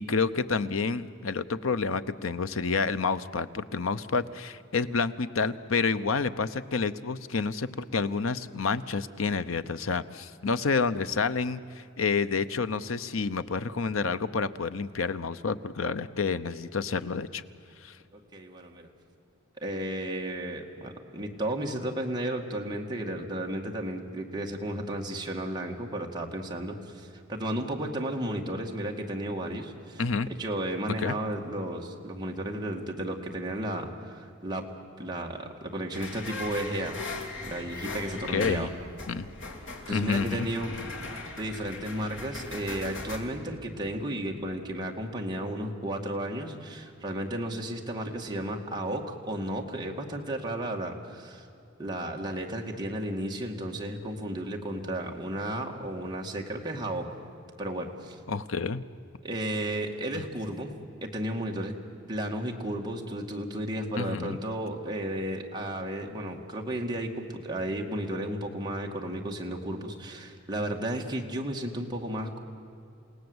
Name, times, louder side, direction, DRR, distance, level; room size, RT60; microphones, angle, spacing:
voice 1, 0.0-17.4 17.8-17.9 30.0-30.3 31.0-31.2 38.3-38.7 39.1-39.3 39.9-40.5 58.3-58.8 64.0-64.4, left 4 dB, 85° left, 12 dB, 0.8 m, -29 dB
voice 2, 18.1-18.9 19.6-30.0 30.4-34.7 35.0-37.0 37.4-38.7 39.9-40.7 41.4-51.5 51.8-57.1 57.6-58.2 59.2-60.7 61.0-61.7 62.1-72.4, right 1 dB, 20° right, 0 dB, 2.1 m, -33 dB
sound 1, 35.9-43.2, left 2 dB, 65° left, 3.3 m, -39 dB
29.0 x 18.0 x 8.0 m, 2.6 s
head